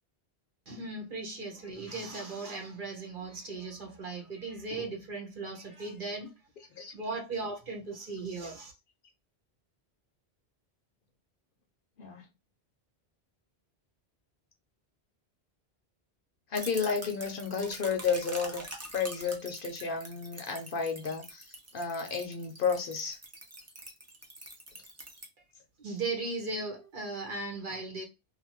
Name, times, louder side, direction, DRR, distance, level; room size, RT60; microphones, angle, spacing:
voice 1, 0.7-6.3 6.9-8.7 25.8-28.0, right 3 dB, 55° right, 1.0 m, -37 dB
voice 2, 16.5-18.6 18.9-23.2, left 5 dB, 60° left, 0.8 m, -32 dB
sound 1, 16.5-25.3, right 1 dB, 20° right, 0.5 m, -45 dB
2.5 x 2.4 x 2.9 m
omnidirectional pair, 1.1 m